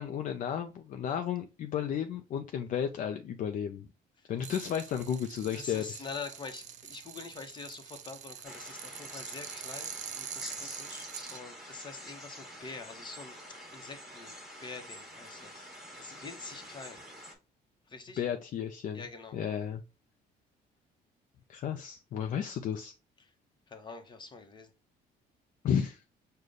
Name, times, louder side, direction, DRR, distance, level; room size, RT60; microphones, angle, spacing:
voice 1, 0.0-3.9 4.3-6.0 18.2-19.0 19.3-19.8 21.5-22.9 25.6-26.0, left 8 dB, 50° left, 0.4 m, -33 dB
sound 1, 4.4-11.4, right 8 dB, 45° right, 0.5 m, -44 dB
voice 2, 5.5-14.3 14.6-15.7 16.0-17.0 17.9-18.2 18.9-19.6 23.2-23.3 23.7-24.7, left 4 dB, 25° left, 0.9 m, -45 dB
sound 2, 8.4-17.3, equal, ahead, 1.3 m, -47 dB
4.9 x 2.2 x 3.8 m
cardioid pair, 110°, 17 cm